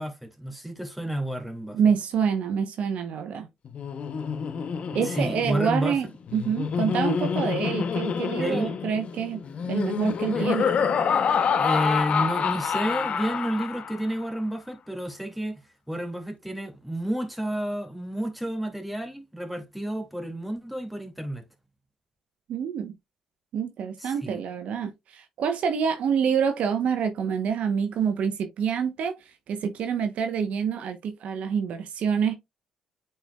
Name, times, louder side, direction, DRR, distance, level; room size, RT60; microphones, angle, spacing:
voice 1, 0.0-1.8 5.0-6.0 8.4-8.7 10.3-10.5 11.6-15.6 15.9-21.4 24.0-24.4, equal, ahead, 2.4 m, -30 dB
voice 2, 1.7-3.5 4.9-6.1 6.3-9.4 9.7-10.7 22.5-22.9 23.5-29.1 29.5-32.3, right 7 dB, 65° right, 0.9 m, -26 dB
Laughter, 3.7-14.1, left 6 dB, 55° left, 0.8 m, -27 dB
9.0 x 4.4 x 2.3 m
hypercardioid pair, 55°, 2 cm